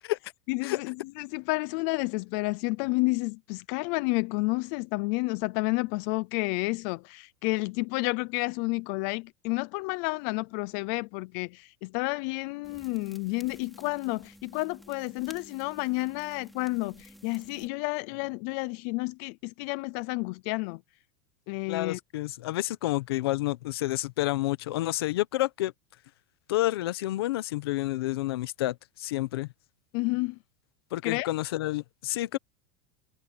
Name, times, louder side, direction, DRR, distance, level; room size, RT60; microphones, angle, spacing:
voice 1, 0.5-20.8 21.5-22.0 29.9-30.4 31.0-31.3, left 25 dB, 45° left, 0.5 m, -30 dB
sound 1, 12.6-17.7, equal, ahead, 3.7 m, -52 dB
voice 2, 21.7-25.7 26.5-29.5 30.9-32.4, left 17 dB, 85° left, 1.1 m, -29 dB
supercardioid pair, 170°, 12 cm